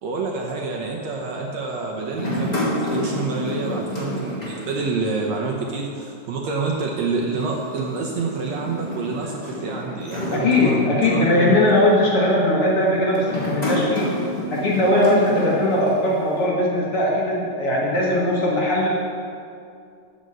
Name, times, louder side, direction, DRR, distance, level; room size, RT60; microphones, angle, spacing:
voice 1, 0.0-11.6, right 4 dB, 70° right, 0 dB, 1.8 m, -27 dB
sound 1, 2.1-5.5 5.8-5.9 7.1-11.3 11.9-12.2 13.1-16.4, left 1 dB, 15° left, 1.9 m, -30 dB
voice 2, 10.3-14.1 14.5-18.9, left 1 dB, 50° left, -4 dB, 2.0 m, -19 dB
13.0 x 5.4 x 7.6 m, 2.4 s
omnidirectional pair, 3.8 m